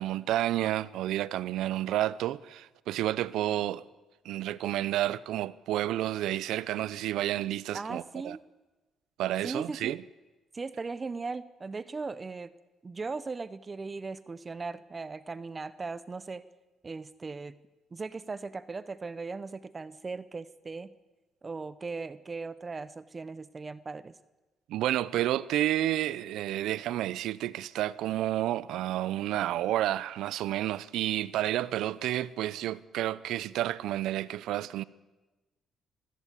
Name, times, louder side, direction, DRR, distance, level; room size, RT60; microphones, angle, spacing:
voice 1, 0.0-3.8 4.2-8.4 9.2-10.0 24.7-34.8, right 13 dB, 85° right, 0.6 m, -30 dB
voice 2, 7.7-8.4 9.4-10.0 10.5-12.5 12.8-16.5 16.8-17.6 17.9-20.9 21.4-24.2, right 4 dB, 30° right, 0.8 m, -38 dB
25.0 x 16.0 x 8.4 m
cardioid pair, 90°, 0 cm